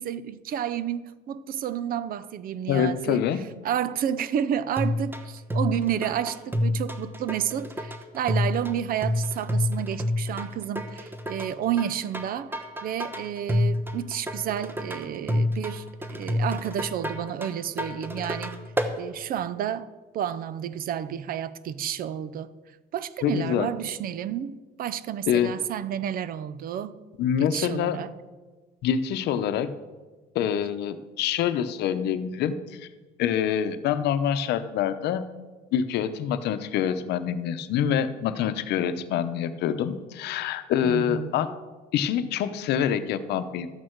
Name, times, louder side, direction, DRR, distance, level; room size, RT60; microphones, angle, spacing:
voice 1, 0.0-3.2 3.6-12.5 12.8-15.8 16.2-18.5 19.0-19.9 20.1-22.5 22.9-27.0 27.4-28.1 40.8-41.3, right 9 dB, 60° right, 16 dB, 0.6 m, -30 dB
voice 2, 2.7-3.4 23.2-23.7 25.3-25.5 27.2-28.0 28.8-29.7 30.3-32.9 33.2-35.2 35.7-41.5 41.9-43.7, left 9 dB, 80° left, 10 dB, 0.8 m, -26 dB
sound 1, 4.8-19.0, left 1 dB, 10° right, 0.9 m, -29 dB
12.5 x 8.6 x 4.6 m, 1.3 s
cardioid pair, 110°, 17 cm